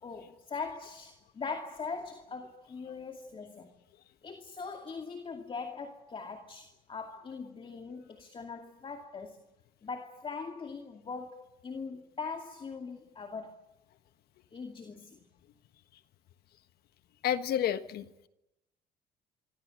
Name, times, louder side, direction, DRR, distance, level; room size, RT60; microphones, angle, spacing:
voice 1, 0.0-3.7 4.2-9.4 9.8-13.6 14.5-15.3, left 5 dB, 30° left, 2.5 m, -41 dB
voice 2, 17.2-18.3, left 10 dB, 70° left, 1.4 m, -30 dB
25.5 x 24.5 x 6.5 m
cardioid pair, 110°, 17 cm